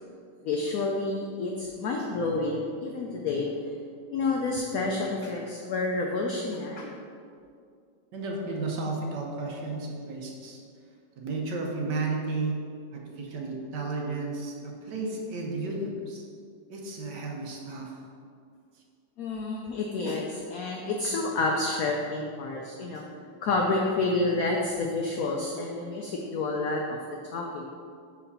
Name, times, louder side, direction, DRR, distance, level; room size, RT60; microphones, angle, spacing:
voice 1, 0.4-3.5 4.1-7.0 19.2-23.0 23.4-27.0 27.3-27.7, left 3 dB, 75° left, 0 dB, 0.8 m, -29 dB
voice 2, 8.1-10.6 11.2-12.6 12.9-16.2 16.7-18.0, right 3 dB, 65° right, 0 dB, 1.4 m, -33 dB
4.9 x 4.2 x 5.4 m, 2.3 s
omnidirectional pair, 2.1 m